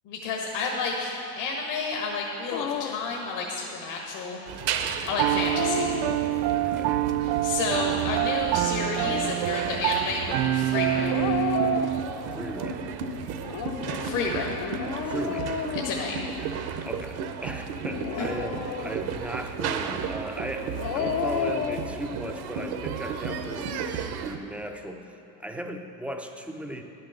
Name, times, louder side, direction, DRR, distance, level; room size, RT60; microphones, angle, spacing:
voice 1, 0.0-4.4 5.1-5.9 7.2-11.3 14.0-14.6 15.8-16.2 18.2-18.3, left 4 dB, 65° left, -1 dB, 1.6 m, -30 dB
Dog, 2.5-3.1 5.2-6.6 8.7-9.5 11.0-12.5 13.4-16.6 17.8-19.2 20.6-21.9, left 8 dB, 50° left, 0.7 m, -33 dB
sound 1, 4.5-24.4, right 5 dB, 50° right, 0.9 m, -34 dB
Piano, 5.2-12.0, right 13 dB, 80° right, 0.6 m, -26 dB
voice 2, 6.5-7.0 12.3-12.9 14.4-14.5 15.0-15.6 16.8-26.8, right 1 dB, 5° right, 4 dB, 0.5 m, -37 dB
10.5 x 6.7 x 6.6 m, 2.8 s
supercardioid pair, 100°, 49 cm